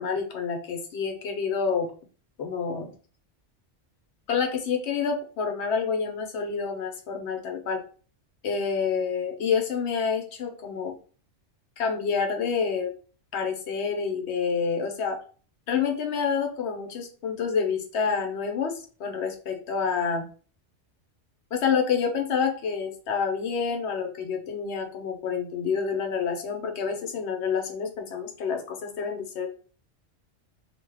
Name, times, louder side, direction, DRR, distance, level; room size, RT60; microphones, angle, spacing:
voice 1, 0.0-1.9 2.4-2.9 4.3-7.8 8.4-10.9 11.8-12.9 13.3-15.2 15.7-20.3 21.5-29.5, left 6 dB, 70° left, 3 dB, 0.9 m, -28 dB
2.7 x 2.2 x 3.3 m, 0.40 s
omnidirectional pair, 1.2 m